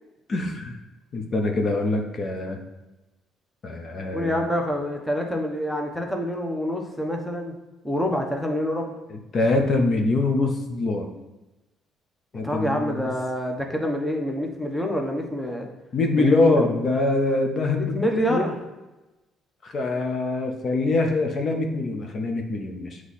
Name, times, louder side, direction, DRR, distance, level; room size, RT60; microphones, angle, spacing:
voice 1, 0.3-0.8 1.1-2.6 3.6-4.5 9.1-11.1 12.3-13.1 15.9-18.0 18.3-18.5 19.6-23.0, left 2 dB, 45° left, 3 dB, 0.8 m, -24 dB
voice 2, 4.1-7.6 7.8-8.9 12.4-15.7 16.2-16.6 17.8-18.5, equal, 5° left, 2 dB, 0.9 m, -27 dB
7.9 x 3.1 x 4.1 m, 1.0 s
cardioid pair, 115°, 0 cm